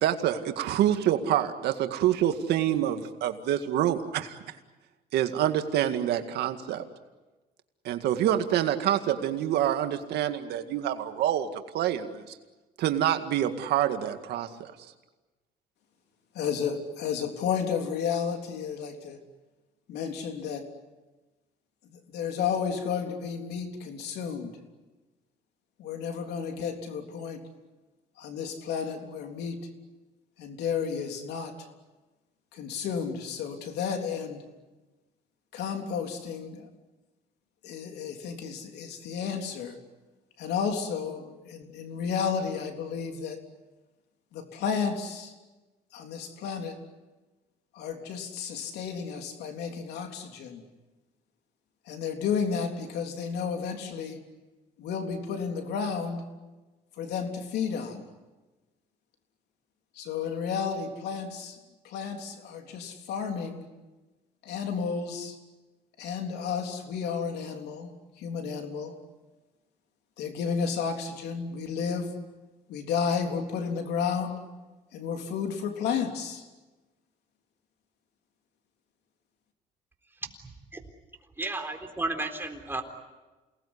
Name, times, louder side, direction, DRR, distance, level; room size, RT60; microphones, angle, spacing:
voice 1, 0.0-4.4 5.1-6.8 7.8-11.5 11.7-12.2 12.8-14.7, right 11 dB, 75° right, 8 dB, 2.0 m, -26 dB
voice 2, 16.3-19.2 19.9-20.7 21.9-24.5 25.8-27.4 28.2-29.7 30.4-31.7 32.5-34.5 35.5-36.7 37.6-39.8 40.4-43.4 44.3-45.3 45.9-46.8 47.7-50.6 51.9-54.2 54.8-56.2 57.0-58.0 59.9-61.6 61.8-63.7 64.4-65.4 66.0-67.9 68.2-69.0 70.2-72.2 72.7-74.4 74.9-76.5, left 6 dB, 75° left, 4 dB, 3.6 m, -32 dB
voice 3, 81.4-82.8, right 2 dB, 15° right, 4 dB, 3.9 m, -32 dB
28.5 x 19.5 x 9.9 m, 1.2 s
cardioid pair, 110°, 17 cm